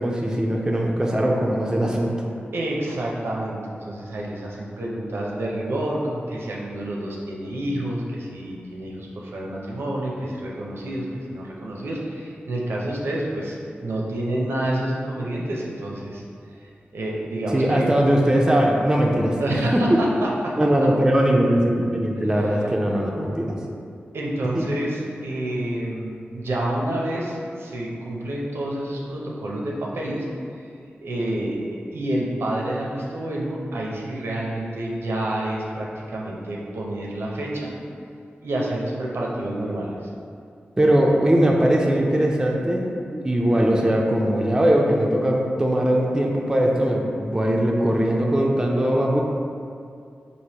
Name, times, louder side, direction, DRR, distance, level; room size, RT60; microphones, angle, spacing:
voice 1, 0.0-2.3 17.5-20.0 20.6-23.5 24.5-24.7 40.8-49.2, right 1 dB, 15° right, -1 dB, 0.4 m, -20 dB
voice 2, 2.5-16.2 16.9-17.9 19.4-20.6 22.4-22.7 24.1-30.3 31.0-37.7 38.4-40.0, right 1 dB, 80° right, -3 dB, 0.5 m, -28 dB
3.3 x 2.5 x 2.9 m, 2.4 s
cardioid pair, 60°, 4 cm